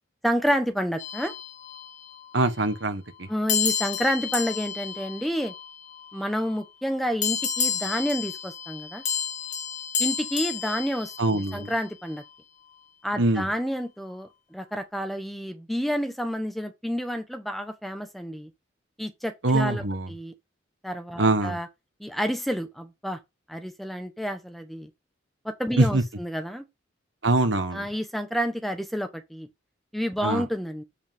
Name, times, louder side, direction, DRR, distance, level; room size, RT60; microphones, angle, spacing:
voice 1, 0.2-1.3 3.3-5.5 6.1-9.0 10.0-12.2 13.0-18.5 19.0-20.3 20.8-21.7 22.0-23.2 23.5-24.9 25.4-26.6 27.7-29.5 29.9-30.8, equal, ahead, 1.1 m, -29 dB
sound 1, 1.0-2.2 3.5-6.2 7.2-11.7, left 7 dB, 40° left, 1.7 m, -31 dB
voice 2, 2.3-3.3 11.2-11.7 13.2-13.5 19.4-20.1 21.2-21.6 25.8-26.0 27.2-27.9 30.2-30.4, right 2 dB, 65° right, 1.3 m, -23 dB
8.3 x 5.2 x 3.6 m
head